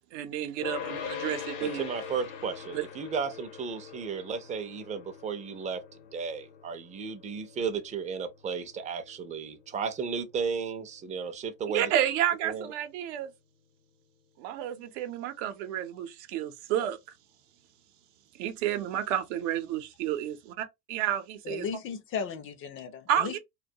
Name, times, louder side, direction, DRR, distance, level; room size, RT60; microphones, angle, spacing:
voice 1, 0.1-1.9 2.7-2.8 11.7-13.3 14.4-17.0 18.4-21.7 23.1-23.4, right 11 dB, 80° right, 0.7 m, -31 dB
sound 1, 0.6-11.9, left 7 dB, 65° left, 0.8 m, -43 dB
voice 2, 1.6-5.8 6.1-11.9 12.4-12.7, right 6 dB, 20° right, 0.4 m, -34 dB
voice 3, 21.5-23.4, left 6 dB, 35° left, 0.4 m, -36 dB
2.2 x 2.2 x 2.7 m
supercardioid pair, 120°, 35 cm